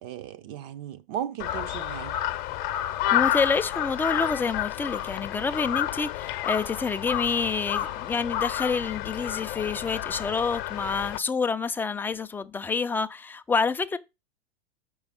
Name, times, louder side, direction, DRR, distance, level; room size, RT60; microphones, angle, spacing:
voice 1, 0.0-2.2, right 10 dB, 45° right, 0.7 m, -36 dB
Crow, 1.4-11.2, left 12 dB, 50° left, 0.8 m, -30 dB
voice 2, 3.1-14.0, left 5 dB, 5° left, 0.3 m, -28 dB
6.2 x 4.7 x 5.5 m
figure-of-eight pair, 90°, 31 cm